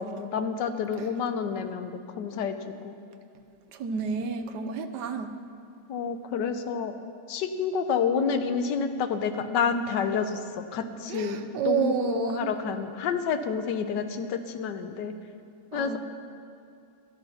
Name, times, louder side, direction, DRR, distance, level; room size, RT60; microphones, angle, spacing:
voice 1, 0.0-2.6 2.8-3.0 4.6-4.7 5.9-6.9 7.3-10.4 10.7-15.1 15.7-16.0, left 6 dB, 80° left, 9 dB, 1.5 m, -29 dB
voice 2, 3.7-5.3 11.1-12.5 15.7-16.0, right 6 dB, 70° right, 8 dB, 1.4 m, -30 dB
13.0 x 13.0 x 5.7 m, 2.6 s
omnidirectional pair, 1.9 m